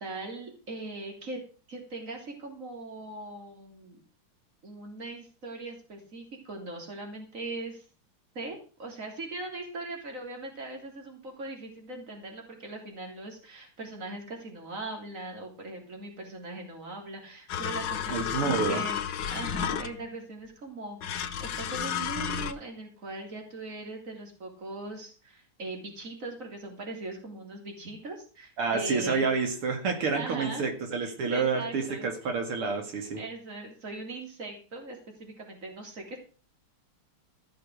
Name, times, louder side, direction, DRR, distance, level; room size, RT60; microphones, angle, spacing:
voice 1, 0.0-1.4 1.7-4.0 4.6-7.8 8.4-19.0 19.3-29.3 30.0-30.7 31.0-32.3 33.2-36.2, right 2 dB, 35° right, 2 dB, 3.6 m, -40 dB
sound 1, 17.5-20.2 21.0-22.5, left 8 dB, 60° left, 1.6 m, -32 dB
voice 2, 18.1-18.8 28.6-33.2, right 5 dB, 80° right, 4 dB, 2.9 m, -29 dB
14.5 x 6.7 x 6.3 m, 0.38 s
omnidirectional pair, 2.4 m